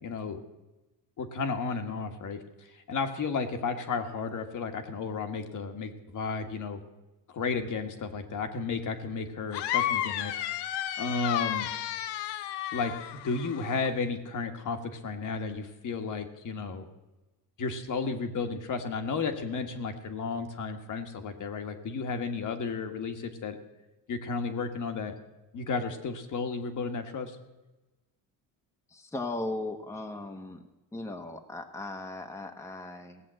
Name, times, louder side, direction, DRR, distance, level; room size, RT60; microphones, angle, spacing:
voice 1, 0.0-0.4 1.2-2.4 2.9-6.8 7.3-10.3 11.0-11.7 12.7-12.9 13.2-16.8 17.6-23.6 24.1-25.1 25.5-27.4, left 4 dB, 50° left, 6 dB, 1.6 m, -33 dB
sound 1, 9.5-13.9, left 12 dB, 80° left, 0.9 m, -32 dB
voice 2, 28.9-30.6 30.9-33.2, left 2 dB, 5° left, 4 dB, 1.1 m, -37 dB
17.5 x 7.6 x 7.6 m, 1.1 s
cardioid pair, 110°, 41 cm